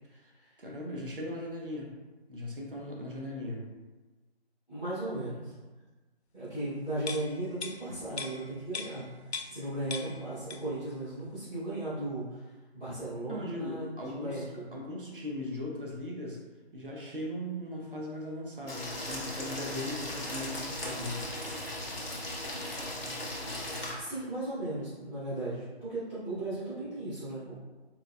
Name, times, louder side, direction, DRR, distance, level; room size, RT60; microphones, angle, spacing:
voice 1, 0.1-0.5 4.7-5.5 6.3-9.0 9.5-12.4 12.7-14.6 24.0-27.5, right 1 dB, ahead, -32 dB, 0.6 m, -36 dB
voice 2, 0.6-1.9 2.3-3.6 13.3-14.4 14.7-16.4 16.7-21.3, left 1 dB, 55° right, -2 dB, 1.1 m, -38 dB
sound 1, 7.0-9.7 9.9-10.9 11.2-11.3, left 4 dB, 80° left, 0.6 m, -40 dB
sound 2, 18.7-23.9, left 1 dB, 60° left, 1.5 m, -37 dB
4.3 x 4.3 x 2.3 m, 1.2 s
figure-of-eight pair, 155°, 32 cm